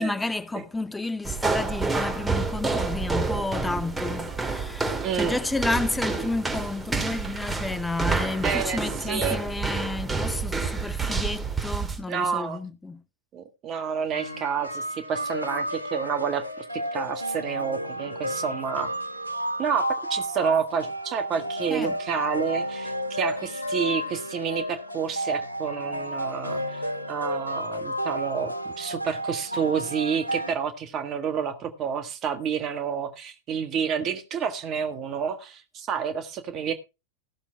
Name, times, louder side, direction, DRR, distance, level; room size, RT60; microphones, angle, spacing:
voice 1, 0.0-13.0 21.7-22.0, left 2 dB, 10° left, 0.7 m, -31 dB
sound 1, 1.2-12.0, right 4 dB, 10° right, 2.3 m, -29 dB
voice 2, 5.0-5.3 8.4-9.4 12.1-12.6 13.3-18.9 19.6-26.8 27.1-36.7, right 7 dB, 30° right, 1.6 m, -29 dB
sound 2, 14.1-30.5, equal, 85° left, 1.2 m, -32 dB
16.0 x 6.9 x 4.6 m
figure-of-eight pair, 90°, 0 cm